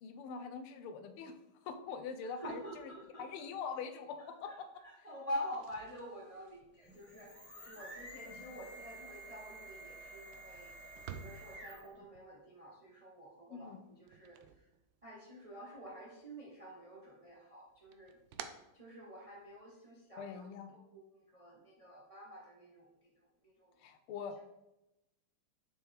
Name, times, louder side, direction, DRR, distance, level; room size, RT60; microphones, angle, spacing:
voice 1, 0.0-1.4 1.6-2.9 3.2-4.7 13.5-13.8 20.2-20.8 23.8-24.5, left 6 dB, 85° left, 8 dB, 1.6 m, -43 dB
voice 2, 2.2-3.3 4.2-7.3 7.7-10.7 11.1-14.6 15.0-18.2 18.5-20.5 20.7-23.1 23.4-23.7, equal, 45° right, -3 dB, 0.4 m, -47 dB
sound 1, 5.4-15.4 15.7-16.6 16.9-19.6, right 8 dB, 75° right, 1.1 m, -55 dB
sound 2, 6.7-12.0, right 1 dB, 5° left, 2.0 m, -51 dB
6.6 x 4.6 x 3.4 m, 0.91 s
omnidirectional pair, 2.3 m